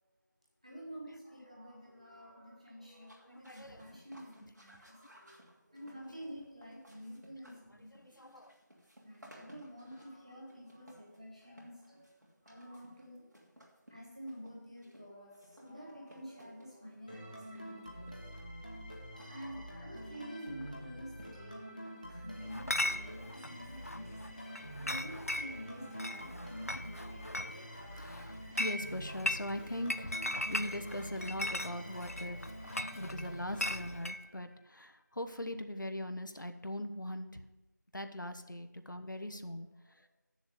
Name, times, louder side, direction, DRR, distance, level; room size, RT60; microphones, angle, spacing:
voice 1, 0.6-8.3 9.0-12.1 12.4-13.3 13.9-18.3 19.0-28.5 39.8-40.1, equal, 20° right, -3 dB, 1.5 m, -49 dB
sound 1, 3.0-22.9, equal, 70° right, 2.7 m, -60 dB
voice 2, 3.2-4.0 4.4-4.5 7.7-8.6 27.9-37.4 37.9-40.1, left 1 dB, 85° left, 8 dB, 1.0 m, -41 dB
sound 2, 17.1-34.6, equal, 25° left, 1.0 m, -47 dB
Chatter / Chink clink, 22.5-34.2, left 1 dB, 50° left, 0.4 m, -39 dB
7.6 x 7.1 x 6.7 m, 1.0 s
figure-of-eight pair, 180°, 10 cm